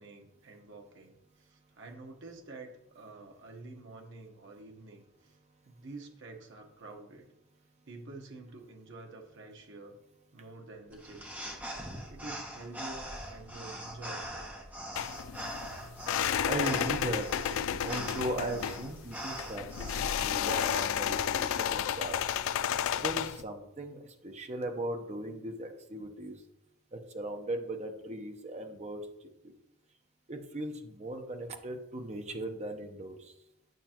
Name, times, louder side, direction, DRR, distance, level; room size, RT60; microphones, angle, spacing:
voice 1, 0.0-5.4 5.6-7.3 7.8-9.9 10.3-11.6 12.1-14.5, right 2 dB, 60° right, 2 dB, 1.1 m, -48 dB
sound 1, 10.9-20.2, equal, 10° right, 1.1 m, -42 dB
sound 2, 14.9-23.4, left 9 dB, 70° left, 0.3 m, -32 dB
voice 2, 16.5-17.3 17.8-22.2 23.0-26.3 26.9-29.0 30.3-33.3, right 1 dB, 35° right, 5 dB, 0.9 m, -38 dB
9.1 x 6.0 x 2.9 m, 0.83 s
head